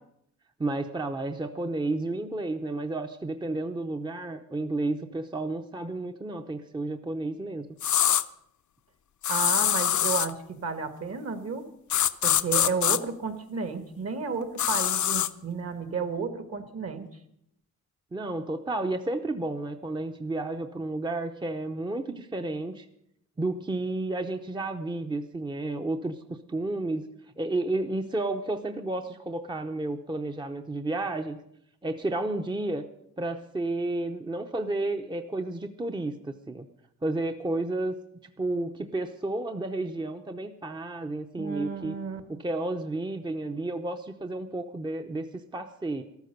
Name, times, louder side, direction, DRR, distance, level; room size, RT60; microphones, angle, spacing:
voice 1, 0.6-7.7 18.1-22.9 23.4-27.1 27.4-31.4 31.8-32.9 33.2-36.6 37.0-38.0 38.2-41.9 42.3-46.0, right 2 dB, 15° right, 6 dB, 0.7 m, -31 dB
sound 1, 7.8-8.2 9.2-10.3 11.9-13.0 14.6-15.3, left 11 dB, 70° left, 0.7 m, -24 dB
voice 2, 9.3-11.7 12.2-17.1 41.4-42.2, right 5 dB, 50° right, 9 dB, 1.7 m, -32 dB
13.5 x 13.0 x 6.7 m, 0.74 s
wide cardioid pair, 125°, 31 cm